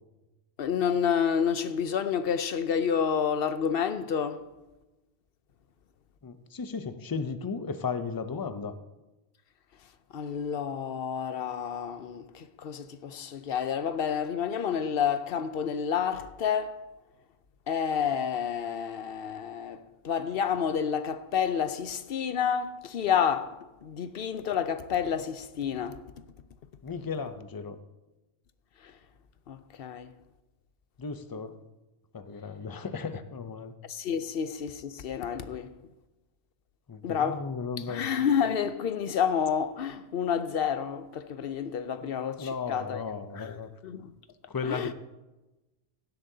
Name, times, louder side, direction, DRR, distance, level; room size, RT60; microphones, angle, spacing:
voice 1, 0.6-4.4 10.1-16.8 17.7-26.0 28.8-28.9 29.5-30.1 33.9-35.7 37.0-37.4 37.8-43.0 43.4-43.5 43.8-44.1 44.6-44.9, left 7 dB, 65° left, 0.8 m, -29 dB
voice 2, 6.2-8.7 26.8-27.8 31.0-31.6 32.1-33.7 36.9-38.1 42.0-42.1 42.4-43.7 44.5-44.9, left 5 dB, 30° left, 0.4 m, -35 dB
16.0 x 11.5 x 2.7 m
omnidirectional pair, 1.1 m